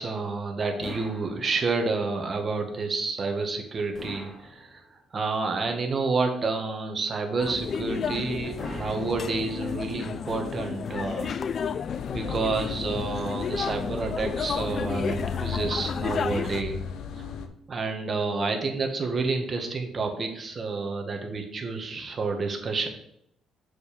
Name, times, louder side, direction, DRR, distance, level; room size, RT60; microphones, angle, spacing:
voice 1, 0.0-4.8 5.1-11.6 12.1-16.8 17.7-22.9, right 3 dB, 40° right, 3 dB, 1.5 m, -29 dB
sound 1, 0.8-2.0 3.9-5.2 8.6-9.9, left 1 dB, 30° left, 2.2 m, -42 dB
sound 2, 7.4-16.6, left 7 dB, 50° left, 0.4 m, -32 dB
sound 3, 11.9-17.5, left 6 dB, 75° left, 0.8 m, -36 dB
6.7 x 4.7 x 5.2 m, 0.74 s
cardioid pair, 85°, 0 cm